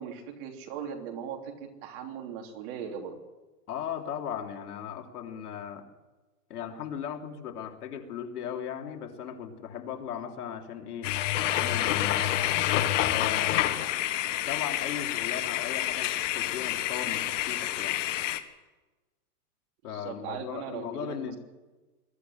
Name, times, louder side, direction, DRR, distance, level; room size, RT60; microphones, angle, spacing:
voice 1, 0.0-3.2 19.8-21.4, right 7 dB, 40° right, 3 dB, 3.3 m, -39 dB
voice 2, 3.7-5.9 6.5-12.4 13.0-18.0 19.8-21.4, left 8 dB, 70° left, 3 dB, 3.3 m, -37 dB
sound 1, 11.0-18.4, left 13 dB, 50° left, 1.6 m, -28 dB
21.5 x 13.5 x 9.3 m, 1.2 s
hypercardioid pair, 150°, 47 cm